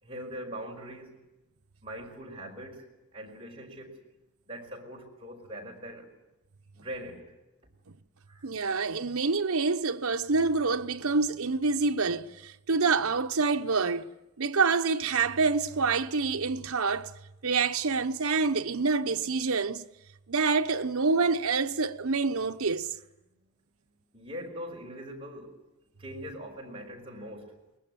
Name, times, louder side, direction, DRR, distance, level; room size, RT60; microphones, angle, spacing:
voice 1, 0.0-1.2 1.8-4.0 4.5-6.1 6.7-7.3 8.3-8.5 24.1-25.6 26.0-27.5, equal, 25° right, 4.9 m, -42 dB
voice 2, 8.4-14.1 14.4-17.1 17.4-19.9 20.3-22.9, right 4 dB, 90° right, 0.9 m, -27 dB
23.0 x 20.5 x 9.2 m
head